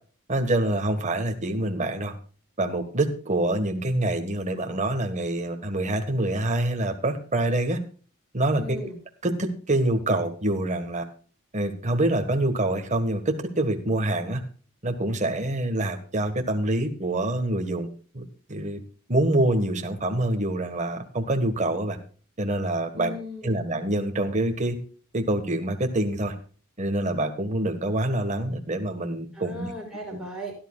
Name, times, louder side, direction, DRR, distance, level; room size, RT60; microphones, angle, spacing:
voice 1, 0.3-2.1 2.6-7.8 8.3-8.9 9.2-11.0 11.5-14.4 14.8-17.9 18.1-18.2 18.5-18.8 19.1-22.0 22.4-23.1 23.4-24.8 25.1-26.3 26.8-29.7 30.1-30.2, right 1 dB, 35° right, 5 dB, 1.5 m, -26 dB
voice 2, 8.5-9.0 22.9-23.6 29.3-30.5, left 1 dB, ahead, 0 dB, 5.7 m, -37 dB
17.0 x 11.0 x 2.4 m, 0.41 s
head